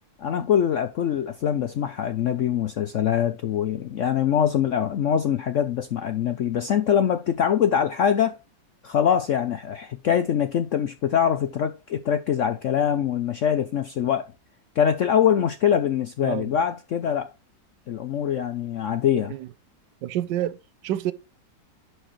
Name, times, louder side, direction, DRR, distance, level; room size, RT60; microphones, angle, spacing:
voice 1, 0.2-8.3 8.8-14.3 14.8-17.3 17.9-19.4, left 9 dB, 80° left, 0.6 m, -23 dB
voice 2, 20.0-20.6 20.8-21.1, right 12 dB, 75° right, 1.3 m, -28 dB
11.0 x 4.6 x 3.1 m
omnidirectional pair, 2.0 m